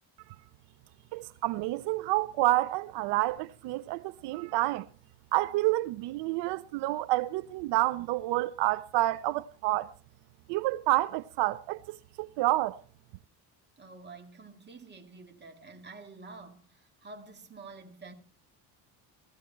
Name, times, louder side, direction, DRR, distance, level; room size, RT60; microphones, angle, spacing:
voice 1, 1.1-4.9 5.3-9.9 10.5-12.8, right 17 dB, 80° right, 0.7 m, -29 dB
voice 2, 13.8-18.1, right 3 dB, 25° right, 2.1 m, -48 dB
16.5 x 14.0 x 4.5 m
cardioid pair, 135°, 41 cm